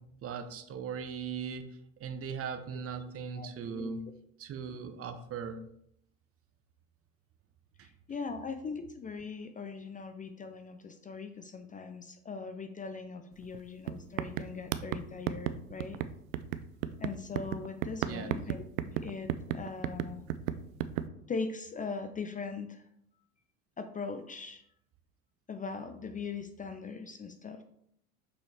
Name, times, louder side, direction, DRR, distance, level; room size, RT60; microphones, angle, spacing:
voice 1, 0.0-4.1 4.4-5.6 7.8-7.9 18.0-18.3, right 6 dB, 35° right, 10 dB, 0.8 m, -39 dB
voice 2, 3.3-3.9 7.8-16.0 17.0-18.7 19.0-20.2 21.3-22.8 23.8-24.6 25.5-27.6, left 4 dB, 20° left, 8 dB, 0.5 m, -40 dB
sound 1, 13.4-13.6 13.9-21.1, right 11 dB, 70° right, 0.6 m, -34 dB
6.3 x 5.8 x 3.4 m, 0.72 s
hypercardioid pair, 80°, 41 cm